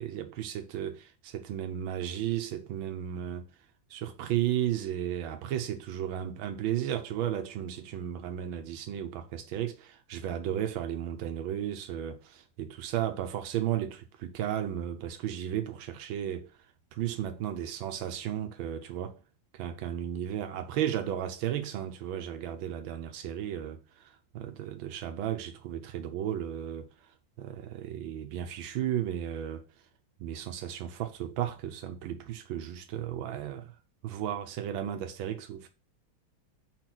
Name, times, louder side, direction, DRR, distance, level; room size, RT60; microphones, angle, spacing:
voice 1, 0.0-3.5 3.9-16.5 16.9-19.2 19.5-26.9 27.4-29.6 30.2-33.7 34.0-35.7, right 10 dB, 85° right, 1.6 m, -34 dB
4.9 x 4.5 x 5.9 m
omnidirectional pair, 2.2 m